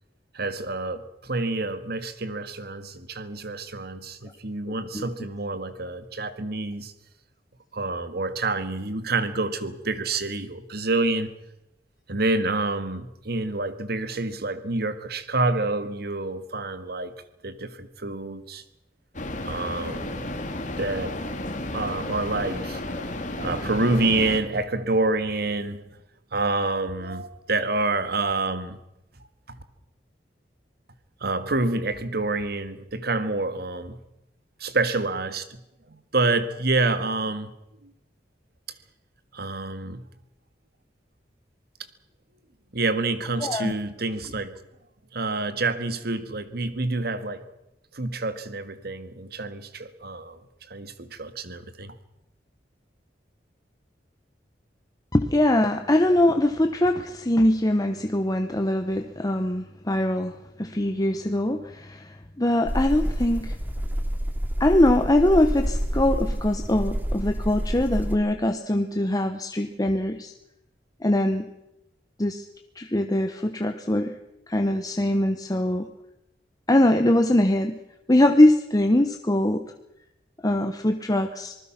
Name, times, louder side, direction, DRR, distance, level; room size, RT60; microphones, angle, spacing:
voice 1, 0.3-6.9 7.7-11.3 12.1-17.1 17.4-18.6 19.4-20.3 20.8-21.4 21.7-25.8 26.3-28.8 29.5-29.6 31.2-34.0 34.6-35.6 35.9-37.5 37.8-37.9 39.3-40.1 42.7-44.6 45.1-47.4 47.9-50.4 50.7-52.0, right 2 dB, 60° right, 11 dB, 1.8 m, -28 dB
sound 1, 19.1-24.4, left 1 dB, 45° left, 2.4 m, -32 dB
voice 2, 43.4-43.7 55.1-63.6 64.6-70.3 71.0-71.5 72.2-72.4 72.7-74.1 74.5-75.9 76.7-77.8 78.1-79.6 80.4-81.5, left 1 dB, 20° left, 6 dB, 1.0 m, -22 dB
sound 2, 62.6-68.2, equal, 10° right, 2.4 m, -28 dB
26.0 x 20.0 x 5.9 m, 0.87 s
head